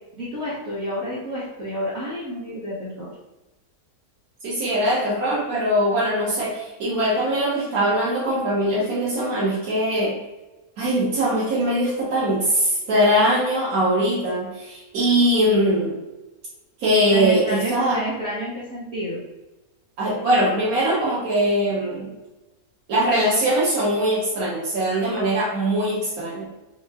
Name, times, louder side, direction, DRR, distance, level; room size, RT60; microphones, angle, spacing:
voice 1, 0.2-3.1 17.1-19.2, equal, 50° right, -8 dB, 1.1 m, -29 dB
voice 2, 4.4-10.1 10.8-15.9 16.8-18.0 20.0-22.1 22.9-26.5, right 1 dB, 70° right, -8 dB, 1.5 m, -21 dB
3.7 x 3.3 x 3.4 m, 1.1 s
omnidirectional pair, 1.6 m